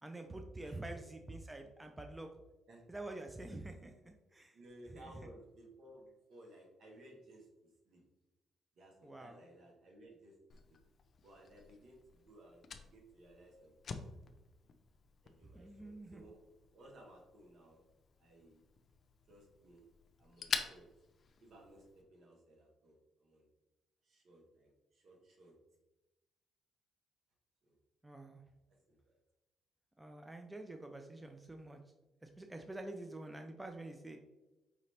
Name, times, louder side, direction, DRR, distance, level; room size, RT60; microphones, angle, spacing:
voice 1, 0.0-2.3 2.9-4.6 5.0-5.1 9.0-9.4 15.5-16.2 28.0-28.4 30.0-31.8 32.2-34.2, right 2 dB, 15° right, 4 dB, 0.4 m, -47 dB
voice 2, 0.6-1.0 2.7-2.9 3.8-3.9 4.5-8.0 8.7-10.8 11.2-14.0 15.2-16.4 16.7-17.8 18.2-18.7 19.3-19.9 20.2-20.9 21.4-23.5 24.0-25.5 27.6-27.8 28.9-29.1, right 1 dB, 65° right, 0 dB, 1.2 m, -59 dB
Fire, 10.5-22.0, left 5 dB, 55° left, 0.5 m, -48 dB
4.9 x 2.7 x 3.2 m, 1.0 s
supercardioid pair, 70°, 0 cm